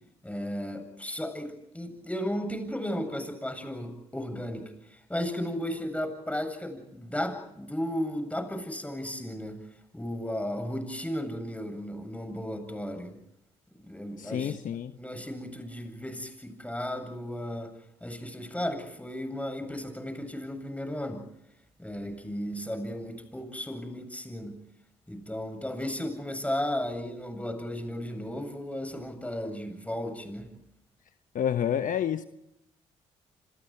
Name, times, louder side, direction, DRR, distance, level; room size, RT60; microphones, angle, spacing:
voice 1, 0.2-9.6 9.9-13.2 13.7-14.6 15.0-17.7 18.0-21.3 21.8-24.6 25.1-30.5, left 1 dB, 10° left, 8.0 m, -35 dB
voice 2, 14.2-14.9 31.3-32.2, left 9 dB, 60° left, 1.2 m, -29 dB
29.5 x 26.0 x 4.7 m
hypercardioid pair, 50°, 15 cm